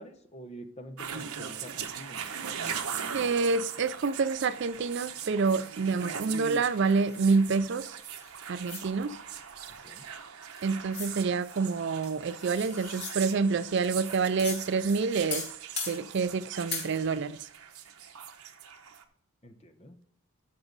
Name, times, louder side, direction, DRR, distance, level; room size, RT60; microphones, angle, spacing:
voice 1, 0.0-3.2 9.7-10.1 19.4-20.0, equal, 30° left, 0.9 m, -47 dB
sound 1, 1.0-19.0, right 7 dB, 80° right, 1.0 m, -40 dB
voice 2, 3.1-8.0 8.5-9.2 10.6-15.5 15.9-17.5, right 4 dB, 50° right, 0.4 m, -27 dB
Sharpening Knife Menacingly, 7.1-8.8 10.6-10.7 10.9-11.1 12.0-13.2 14.4-14.6 15.3-16.0 16.7-16.9, left 4 dB, 50° left, 2.7 m, -38 dB
13.0 x 5.9 x 4.0 m
head